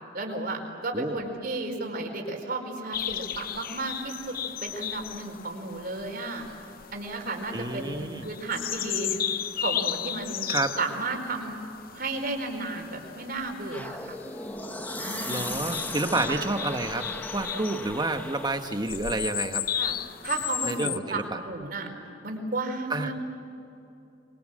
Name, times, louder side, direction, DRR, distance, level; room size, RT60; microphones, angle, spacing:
voice 1, 0.1-6.5 6.9-9.2 9.6-10.4 10.8-11.6 11.9-14.1 15.0-15.7 16.3-16.5 19.7-20.0 20.2-21.9 22.2-23.1, right 2 dB, 55° right, 3 dB, 4.7 m, -33 dB
sound 1, 2.9-21.0, left 10 dB, 50° left, 0.7 m, -35 dB
voice 2, 7.5-8.3 10.5-10.7 15.3-17.1 17.3-19.6 20.6-21.4 22.9-23.1, right 2 dB, 25° right, 7 dB, 1.3 m, -29 dB
sound 2, 13.7-18.8, left 1 dB, 10° left, 1.2 m, -37 dB
25.0 x 24.0 x 7.7 m, 2.8 s
head